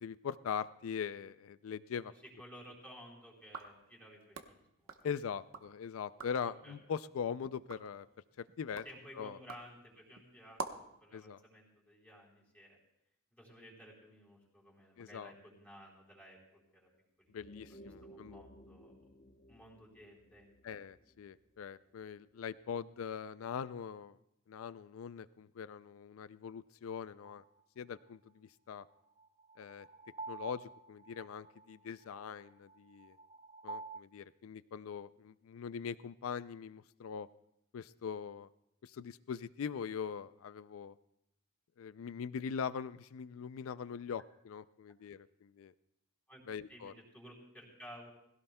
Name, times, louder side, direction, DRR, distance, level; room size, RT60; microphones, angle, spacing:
voice 1, 0.0-2.1 5.0-8.1 8.4-8.8 9.2-9.4 11.1-11.4 15.0-15.3 17.3-18.4 20.6-24.2 24.5-27.4 27.8-28.9 29.6-29.9 30.3-33.2 33.6-37.3 37.7-38.5 38.8-41.0 41.8-45.7 46.5-46.9, left 7 dB, 85° left, 16 dB, 0.4 m, -42 dB
voice 2, 2.4-5.1 6.5-6.7 8.8-12.8 13.3-16.9 17.2-17.4 18.0-19.0 19.5-20.5 46.3-46.4 46.7-48.1, equal, 10° left, -3 dB, 4.0 m, -55 dB
sound 1, 3.4-5.7 6.0-6.5 7.0-11.0, right 3 dB, 90° right, 1.0 m, -49 dB
sound 2, 17.3-22.1, equal, 45° left, 1.0 m, -57 dB
sound 3, 27.2-27.3 29.2-34.0, right 4 dB, 30° right, 0.4 m, -48 dB
20.5 x 16.5 x 2.2 m, 0.81 s
head